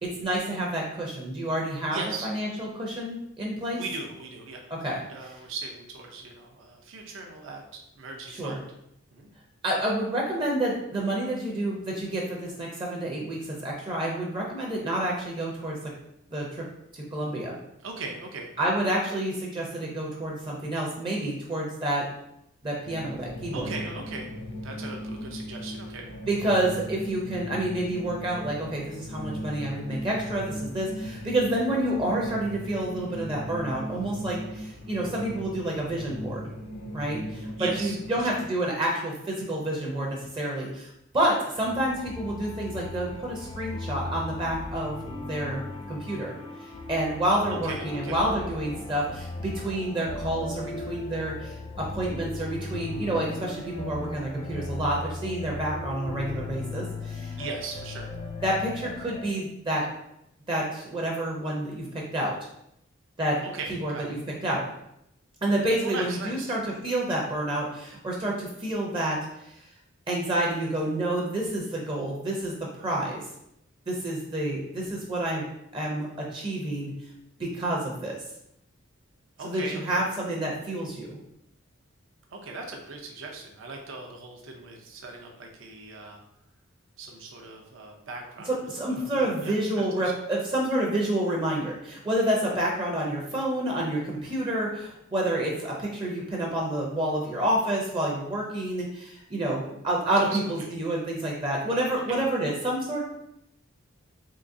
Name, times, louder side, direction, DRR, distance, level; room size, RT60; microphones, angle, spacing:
voice 1, 0.0-3.8 4.8-5.0 8.3-8.6 9.6-15.9 16.3-16.6 16.9-17.6 18.6-22.0 22.6-23.7 26.3-36.4 36.9-45.6 45.9-46.3 46.9-57.4 58.4-59.9 60.5-62.4 63.2-63.4 63.8-64.2 64.4-64.6 65.4-69.2 69.5-69.6 70.1-73.2 73.9-75.4 75.7-76.9 77.4-78.2 79.4-81.2 88.4-103.0, right 1 dB, 25° right, -2 dB, 0.5 m, -29 dB
voice 2, 1.9-2.3 3.7-8.6 9.1-9.3 17.8-18.5 23.5-26.1 37.6-38.4 47.5-48.3 57.4-58.1 63.4-64.1 65.8-66.5 79.4-80.1 82.3-86.2 87.0-90.1 100.2-100.7 102.1-102.2, right 3 dB, 70° right, 1 dB, 0.6 m, -39 dB
sound 1, 22.8-38.4, equal, 90° left, 0.8 m, -38 dB
sound 2, 41.6-59.3, left 2 dB, 30° left, 0.4 m, -37 dB
3.7 x 3.0 x 2.6 m, 0.80 s
head